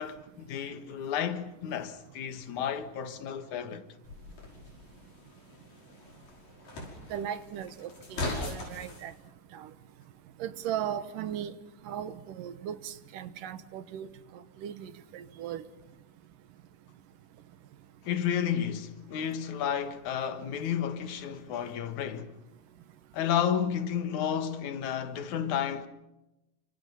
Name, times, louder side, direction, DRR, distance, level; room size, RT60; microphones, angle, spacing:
voice 1, 0.0-3.8 18.0-22.3 23.1-25.9, left 8 dB, 65° left, 2.8 m, -32 dB
sound 1, 4.0-9.1, left 2 dB, 85° left, 7.3 m, -40 dB
voice 2, 7.1-9.1 9.5-9.7 10.4-11.5 11.8-14.1 14.6-15.6, right 10 dB, 85° right, 2.8 m, -37 dB
30.0 x 26.0 x 5.7 m
omnidirectional pair, 3.7 m